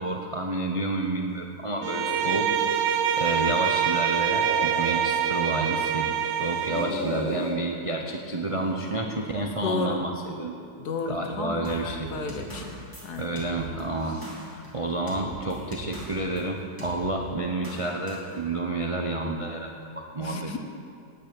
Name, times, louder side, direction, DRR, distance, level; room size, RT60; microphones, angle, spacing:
voice 1, 0.0-6.1 6.4-10.6 11.1-12.1 13.2-14.2 14.5-20.6, right 2 dB, 40° right, 1 dB, 0.5 m, -30 dB
Bowed string instrument, 1.8-7.0, right 9 dB, 80° right, 1.3 m, -25 dB
sound 1, 1.9-3.7 4.1-5.8 6.1-7.5 8.3-9.1, left 1 dB, 45° left, 3.7 m, -36 dB
voice 2, 9.6-10.0 10.8-13.3 20.2-20.6, left 4 dB, 65° left, 4 dB, 1.5 m, -32 dB
sound 2, 11.6-16.4 16.8-17.0 17.6-18.3, right 1 dB, 10° left, 2.6 m, -42 dB
9.7 x 9.1 x 8.7 m, 2.4 s
omnidirectional pair, 1.9 m